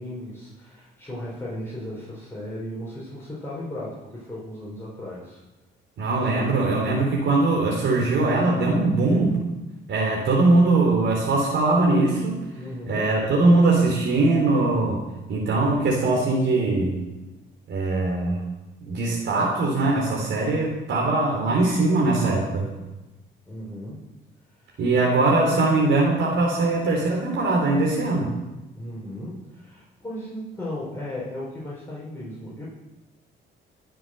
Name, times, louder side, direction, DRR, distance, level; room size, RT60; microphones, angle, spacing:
voice 1, 0.0-5.4 12.6-13.1 23.5-24.0 24.5-24.8 28.7-32.7, left 1 dB, 10° left, -7 dB, 5.4 m, -36 dB
voice 2, 6.0-9.4 9.9-12.4 12.9-15.0 15.3-17.0 17.7-18.4 18.8-22.7 24.8-28.3, right 2 dB, 70° right, -2 dB, 3.7 m, -21 dB
21.5 x 7.7 x 6.8 m, 1.0 s
cardioid pair, 90°, 20 cm